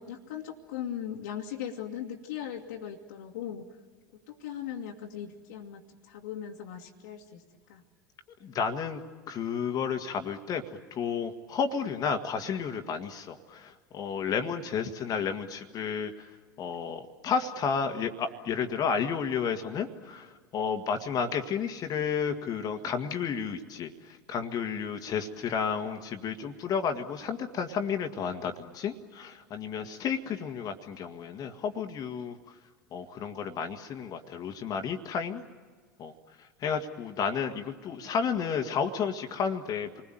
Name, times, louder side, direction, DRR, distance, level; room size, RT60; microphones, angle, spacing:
voice 1, 0.0-3.7 4.1-7.4 7.7-7.8, left 9 dB, 65° left, -3 dB, 2.2 m, -39 dB
voice 2, 8.4-9.0 9.3-10.6 10.9-16.3 16.6-32.4 32.9-35.4 36.0-36.1 36.4-40.0, left 6 dB, 40° left, 6 dB, 1.9 m, -32 dB
29.0 x 21.0 x 9.2 m, 1.5 s
figure-of-eight pair, 80°, 10 cm